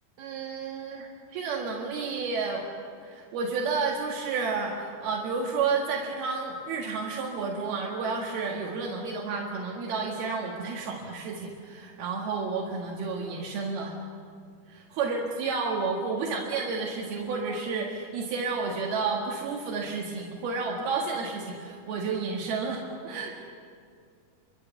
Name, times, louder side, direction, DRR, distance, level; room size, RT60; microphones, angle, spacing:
voice 1, 0.2-2.7 3.0-14.0 14.7-23.3, right 4 dB, 80° right, -2 dB, 3.9 m, -31 dB
29.0 x 24.5 x 7.0 m, 2.2 s
omnidirectional pair, 4.3 m